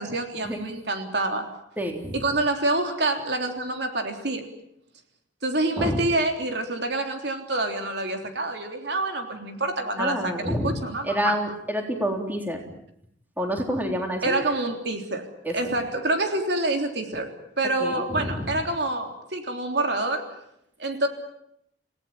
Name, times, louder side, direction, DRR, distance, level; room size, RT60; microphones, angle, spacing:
voice 1, 0.0-1.5 2.1-4.4 5.4-11.4 14.2-15.3 15.5-17.3 17.6-20.3 20.8-21.1, right 2 dB, 60° right, 4 dB, 3.5 m, -27 dB
voice 2, 1.8-2.2 5.8-6.0 10.0-10.7 11.0-12.6 13.4-14.4 15.4-15.7 17.8-18.6, equal, 10° right, 2 dB, 3.7 m, -28 dB
29.5 x 17.5 x 9.0 m, 0.76 s
head